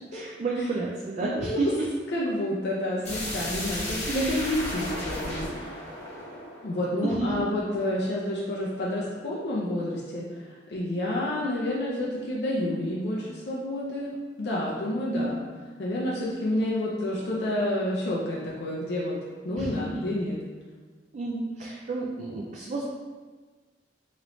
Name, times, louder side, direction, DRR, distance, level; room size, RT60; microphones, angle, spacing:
voice 1, 0.1-1.9 3.6-3.8 4.1-4.3 7.0-7.5 15.1-15.3 19.6-20.0 21.1-22.8, right 3 dB, 40° right, -3 dB, 0.3 m, -31 dB
voice 2, 1.2-1.6 2.1-4.0 4.3-5.8 6.6-15.4 15.8-19.2 19.4-20.4, left 1 dB, 65° left, -6 dB, 0.5 m, -29 dB
sound 1, 3.0-7.8, left 1 dB, 40° left, 0.9 m, -34 dB
3.0 x 3.0 x 2.6 m, 1.4 s
head